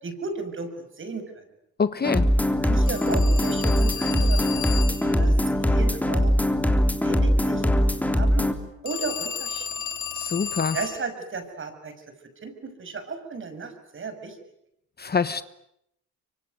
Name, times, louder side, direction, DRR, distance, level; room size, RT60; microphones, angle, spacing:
voice 1, 0.0-1.4 2.6-6.3 6.6-8.5 8.8-9.7 10.7-11.9 12.4-14.4, right 4 dB, 40° right, 8 dB, 6.3 m, -35 dB
voice 2, 1.8-2.3 10.1-10.8 15.0-15.4, left 5 dB, 30° left, 14 dB, 1.1 m, -25 dB
sound 1, 2.0-8.5, equal, 5° left, 3.6 m, -21 dB
Telephone, 2.9-5.2 8.9-11.1, left 8 dB, 70° left, 2.9 m, -33 dB
25.0 x 25.0 x 9.6 m, 0.79 s
cardioid pair, 90°, 30 cm